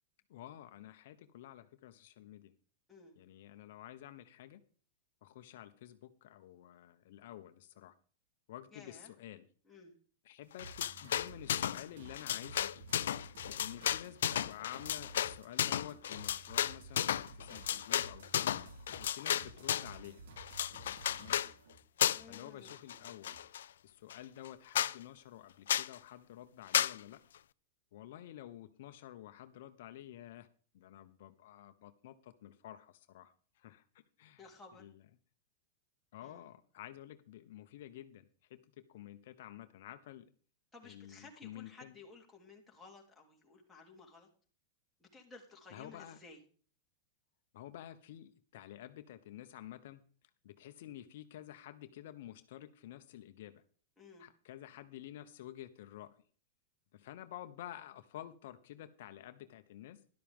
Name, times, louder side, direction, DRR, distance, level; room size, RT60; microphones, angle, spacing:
voice 1, 0.3-2.5 3.2-4.6 5.2-7.9 8.5-9.5 10.2-12.7 13.5-18.6 19.0-20.3 20.7-21.4 22.3-23.4 23.8-27.2 27.9-30.5 30.7-34.4 34.8-34.9 36.1-40.3 40.8-41.9 45.7-46.2 47.5-50.0 50.4-53.6 54.2-56.2 56.9-60.0, left 12 dB, 60° left, 9 dB, 1.0 m, -50 dB
voice 2, 8.7-9.1 9.6-10.0 22.2-22.7 34.4-34.9 36.2-36.5 40.7-44.3 45.0-46.4 54.0-54.3, left 3 dB, 5° left, -2 dB, 3.0 m, -55 dB
sound 1, 10.6-11.8 12.1-20.0 20.4-21.5 22.0-22.4 22.7-23.6 24.1-24.2 24.4-24.5 24.7-25.0 25.7-25.9 26.7-27.0, left 10 dB, 85° left, 0.4 m, -33 dB
sound 2, 10.6-21.8 22.1-23.5, right 3 dB, 75° right, 3.5 m, -54 dB
12.5 x 12.0 x 3.6 m, 0.42 s
supercardioid pair, 155°, 0 cm